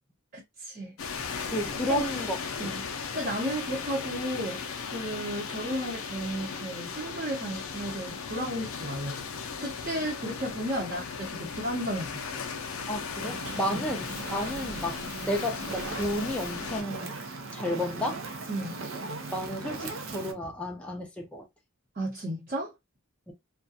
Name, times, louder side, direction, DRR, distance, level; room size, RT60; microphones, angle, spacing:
voice 1, 0.3-0.9 1.9-2.0 2.6-2.9 3.1-4.6 4.9-9.2 9.6-12.4 13.7-13.8 18.5-18.8 22.0-22.7, equal, 40° right, 0.8 m, -33 dB
sound 1, 1.0-16.8, left 5 dB, 70° left, 0.4 m, -37 dB
voice 2, 1.5-2.4 2.6-2.8 10.8-10.9 12.9-17.1 17.5-18.2 19.3-21.5 23.3-23.4, equal, 5° left, 0.5 m, -32 dB
Fire, 13.2-20.3, right 3 dB, 65° right, 0.5 m, -38 dB
2.4 x 2.2 x 2.6 m
head